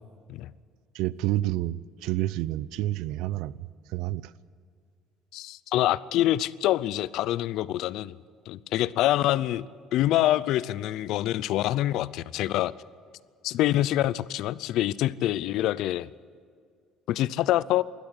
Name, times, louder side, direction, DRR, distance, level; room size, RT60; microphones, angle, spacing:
voice 1, 0.9-4.3, right 15 dB, 75° right, 19 dB, 0.6 m, -29 dB
voice 2, 5.3-8.2 8.5-9.7 9.9-12.7 13.4-16.1 17.1-17.8, left 14 dB, 60° left, 19 dB, 0.5 m, -25 dB
20.5 x 13.5 x 9.8 m, 2.2 s
cardioid pair, 170°, 0 cm